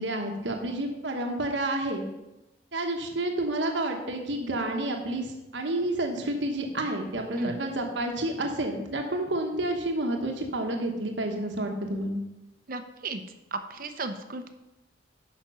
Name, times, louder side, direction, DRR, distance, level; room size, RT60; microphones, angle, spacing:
voice 1, 0.0-2.0 2.7-12.2, right 1 dB, 70° right, 2 dB, 1.2 m, -30 dB
voice 2, 12.7-13.2 13.5-14.5, right 3 dB, 50° right, 8 dB, 0.8 m, -35 dB
8.5 x 6.0 x 5.6 m, 0.97 s
head